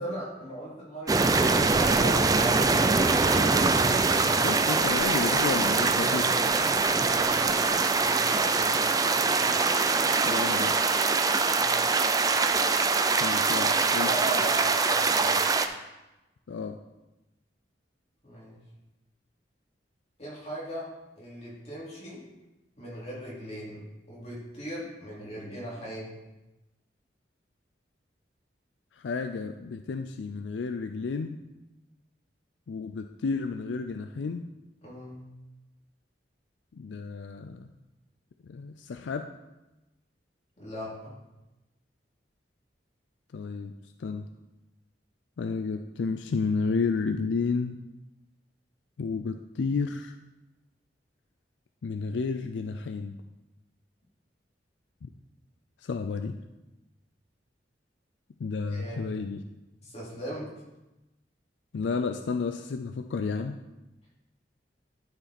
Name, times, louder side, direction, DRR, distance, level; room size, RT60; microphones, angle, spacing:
voice 1, 0.0-5.2 6.9-9.5 11.5-12.0 13.3-15.5 18.2-18.6 20.2-22.2 22.8-23.8 24.1-26.1 34.8-35.2 40.6-41.2 58.6-59.0 59.8-60.5, right 1 dB, 40° left, -5 dB, 2.9 m, -39 dB
sound 1, 1.1-15.7, right 4 dB, 20° right, 0.4 m, -23 dB
voice 2, 4.4-6.4 10.3-10.8 13.2-13.7 13.9-14.1 16.5-16.8 28.9-31.4 32.7-34.5 36.8-37.6 38.4-39.3 43.3-43.7 44.0-44.3 45.4-47.8 49.0-50.2 51.8-53.2 55.0-55.1 55.8-56.4 58.4-59.4 61.7-63.6, left 4 dB, 80° left, 7 dB, 0.4 m, -31 dB
11.5 x 4.9 x 4.2 m, 1.0 s
head